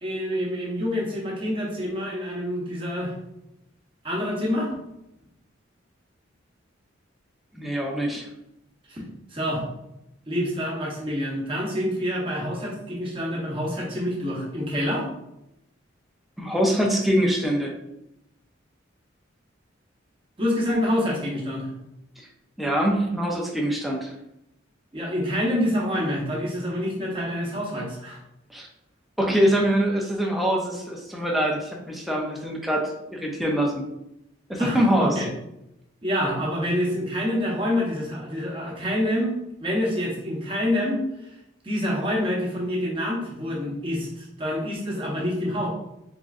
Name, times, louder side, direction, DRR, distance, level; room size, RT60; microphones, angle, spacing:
voice 1, 0.0-3.1 4.0-4.8 8.9-9.1 9.3-9.7 10.3-15.1 20.4-21.7 24.9-28.2 34.6-35.3 36.0-41.0 41.6-45.7, equal, 25° right, -3 dB, 0.9 m, -27 dB
voice 2, 7.6-8.3 16.4-17.7 22.6-24.1 28.5-28.7 29.2-32.8 33.1-33.8 34.5-35.2, equal, ahead, -1 dB, 0.5 m, -24 dB
3.7 x 3.0 x 2.4 m, 0.84 s
head